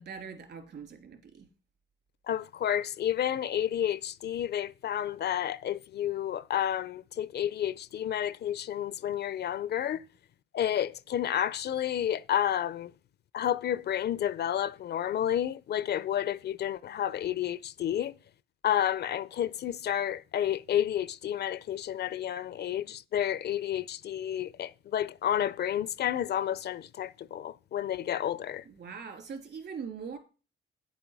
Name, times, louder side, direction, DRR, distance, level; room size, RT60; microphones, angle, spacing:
voice 1, 0.0-1.5 28.6-30.2, right 6 dB, 60° right, 3.2 m, -42 dB
voice 2, 2.3-10.0 10.5-12.9 13.3-18.2 18.6-28.6, left 10 dB, 55° left, 0.5 m, -30 dB
9.4 x 8.2 x 4.7 m
cardioid pair, 90°, 20 cm